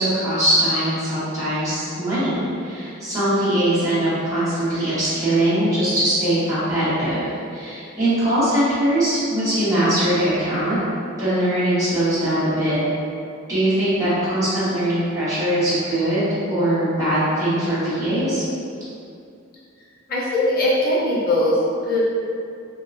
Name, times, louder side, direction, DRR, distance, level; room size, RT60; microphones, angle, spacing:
voice 1, 0.0-10.8 11.2-12.8 13.5-18.4, right 1 dB, 15° right, -14 dB, 1.2 m, -21 dB
voice 2, 20.1-22.0, left 1 dB, 45° left, -7 dB, 0.7 m, -20 dB
3.1 x 2.7 x 2.7 m, 2.4 s
head